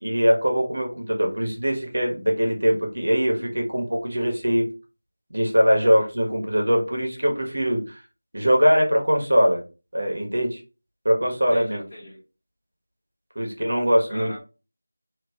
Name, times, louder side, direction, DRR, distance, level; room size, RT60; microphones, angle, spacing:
voice 1, 0.0-4.6 5.3-8.0 8.3-9.6 9.9-10.6 11.0-11.8 13.3-14.3, equal, 75° right, 0 dB, 1.3 m, -22 dB
voice 2, 11.5-12.2 14.1-14.4, equal, 20° left, -12 dB, 1.0 m, -40 dB
2.9 x 2.5 x 3.4 m, 0.32 s
figure-of-eight pair, 180°, 0 cm